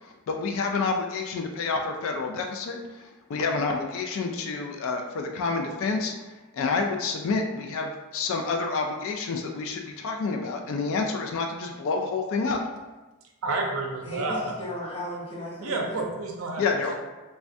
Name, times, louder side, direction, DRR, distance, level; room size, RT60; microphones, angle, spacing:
voice 1, 0.0-6.1 6.5-12.6 16.6-17.0, left 4 dB, 65° left, 3 dB, 0.3 m, -28 dB
voice 2, 13.4-14.5 15.6-16.6, right 2 dB, 65° right, 1 dB, 0.5 m, -29 dB
voice 3, 14.0-16.0, left 1 dB, 25° left, -8 dB, 1.0 m, -36 dB
3.3 x 2.2 x 2.6 m, 1.2 s
head